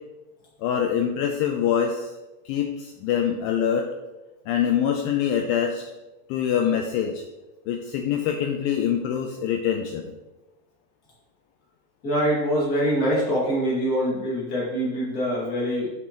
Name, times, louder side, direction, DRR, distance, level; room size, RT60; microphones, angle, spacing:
voice 1, 0.6-2.1 2.5-3.9 4.5-5.9 6.3-7.2 7.7-10.1, left 8 dB, 90° left, 3 dB, 2.0 m, -24 dB
voice 2, 12.0-15.9, equal, 30° left, -5 dB, 1.9 m, -24 dB
9.7 x 5.4 x 3.0 m, 1.1 s
omnidirectional pair, 4.6 m